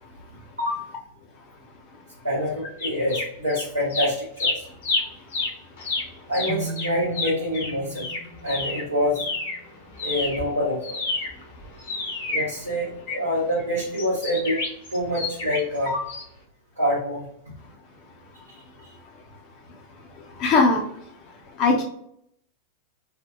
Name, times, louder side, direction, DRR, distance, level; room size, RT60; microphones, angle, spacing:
voice 1, 2.2-4.7 6.3-8.1 8.4-9.2 10.0-11.0 12.3-14.6 14.9-16.1 16.8-17.2 18.5-18.6 18.8-18.9, equal, 80° right, -10 dB, 1.5 m, -26 dB
sound 1, 2.8-3.6 3.9-9.6 9.9-13.2 13.9-15.8 16.1-16.2, left 3 dB, 65° left, 1.0 m, -29 dB
sound 2, 6.5-10.4, right 3 dB, 40° right, 0.8 m, -38 dB
voice 2, 20.4-20.8 21.6-21.8, left 3 dB, 40° left, 1 dB, 0.6 m, -18 dB
4.3 x 2.1 x 2.3 m, 0.69 s
figure-of-eight pair, 90°, 0 cm